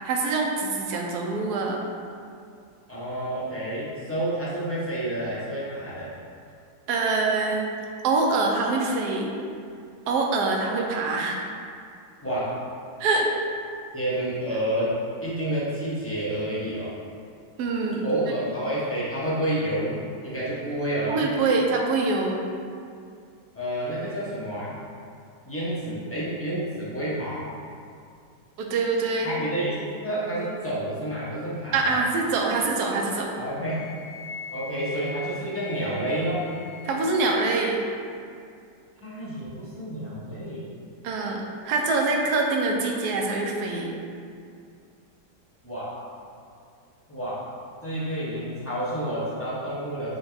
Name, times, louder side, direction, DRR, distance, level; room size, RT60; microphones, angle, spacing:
voice 1, 0.0-1.8 6.9-9.3 10.1-11.5 13.0-13.3 17.6-18.0 21.1-22.4 28.6-29.3 31.7-33.3 36.8-37.8 41.0-43.9, right 3 dB, 75° right, 0 dB, 1.1 m, -25 dB
voice 2, 2.9-6.1 12.2-12.5 13.9-14.9 15.2-16.9 18.0-19.9 20.2-21.2 23.5-24.8 25.5-27.5 29.2-32.0 33.4-33.8 34.5-36.5 39.0-40.7 45.6-45.9 47.1-47.4 47.8-50.2, right 1 dB, 10° left, -8 dB, 0.7 m, -29 dB
Wind instrument woodwind instrument, 33.6-37.3, left 4 dB, 85° left, 1.3 m, -40 dB
6.0 x 2.3 x 3.9 m, 2.3 s
omnidirectional pair, 1.8 m